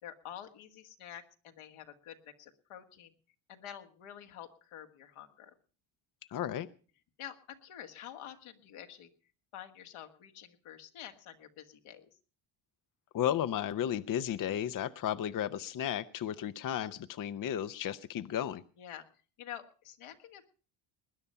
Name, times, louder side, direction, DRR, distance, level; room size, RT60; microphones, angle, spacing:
voice 1, 0.0-3.1 3.5-5.5 7.2-9.1 9.5-12.1 18.8-19.1 19.4-20.5, left 10 dB, 80° left, 5 dB, 1.9 m, -48 dB
voice 2, 6.3-6.7 13.1-18.6, left 10 dB, 40° left, 13 dB, 0.6 m, -34 dB
20.5 x 9.9 x 5.5 m, 0.40 s
cardioid pair, 95°, 50 cm